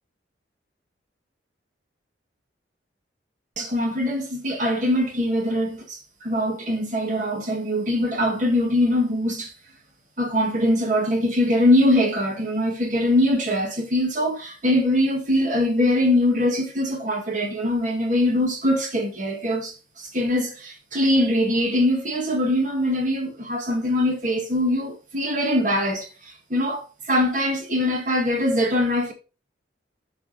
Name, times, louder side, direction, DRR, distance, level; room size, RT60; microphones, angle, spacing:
voice 1, 3.6-9.5 10.2-29.1, left 1 dB, 40° right, 1.9 m, -22 dB
9.2 x 5.8 x 2.8 m
head